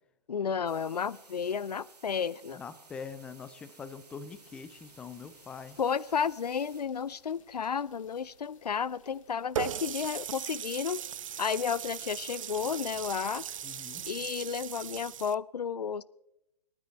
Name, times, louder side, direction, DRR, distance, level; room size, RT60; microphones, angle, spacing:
voice 1, 0.3-2.6 5.8-11.0 11.4-13.4 14.1-16.0, left 7 dB, 75° left, 21 dB, 0.5 m, -32 dB
sound 1, 0.7-6.8, right 4 dB, 75° right, 2.6 m, -57 dB
voice 2, 2.5-5.8 13.6-14.0, left 5 dB, 5° left, 14 dB, 0.4 m, -44 dB
sound 2, 4.3-13.8, left 5 dB, 55° left, 2.5 m, -63 dB
Water tap faucet, 9.6-15.3, right 9 dB, 55° right, 0.4 m, -38 dB
27.5 x 9.8 x 4.3 m, 0.84 s
figure-of-eight pair, 130°, 21 cm